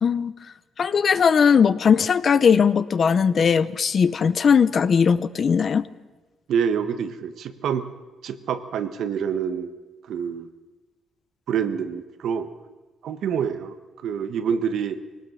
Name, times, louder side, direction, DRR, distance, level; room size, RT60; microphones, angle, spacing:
voice 1, 0.0-0.3 0.8-5.9, left 6 dB, 45° left, 15 dB, 0.7 m, -19 dB
voice 2, 6.5-7.9 8.2-9.7 10.1-10.5 11.5-12.5 13.0-13.8 14.0-15.0, right 7 dB, 70° right, 10 dB, 1.4 m, -26 dB
22.0 x 18.5 x 6.4 m, 1.2 s
cardioid pair, 115°, 0 cm